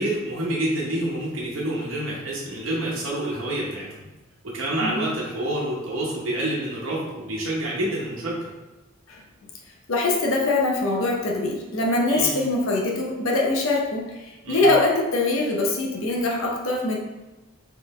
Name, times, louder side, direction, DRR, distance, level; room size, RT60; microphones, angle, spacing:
voice 1, 0.0-4.1 4.5-8.5 12.1-12.3 14.4-14.7, right 1 dB, 90° right, -4 dB, 1.0 m, -28 dB
voice 2, 9.9-17.0, left 2 dB, 85° left, -1 dB, 0.7 m, -23 dB
4.1 x 3.2 x 3.1 m, 1.1 s
head